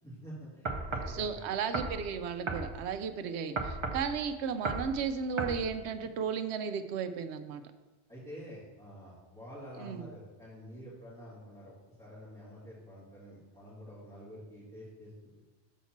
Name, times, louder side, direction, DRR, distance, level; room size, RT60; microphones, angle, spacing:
voice 1, 0.0-1.4 8.1-15.4, equal, 5° left, -12 dB, 2.3 m, -48 dB
sound 1, 0.7-1.2 1.7-2.0 2.5-2.7 3.6-4.1 4.7-4.9 5.4-5.6, right 3 dB, 35° right, 0.5 m, -34 dB
voice 2, 1.1-7.6 9.8-10.1, right 6 dB, 75° right, 9 dB, 0.9 m, -34 dB
7.2 x 4.2 x 5.8 m, 1.1 s
omnidirectional pair, 1.2 m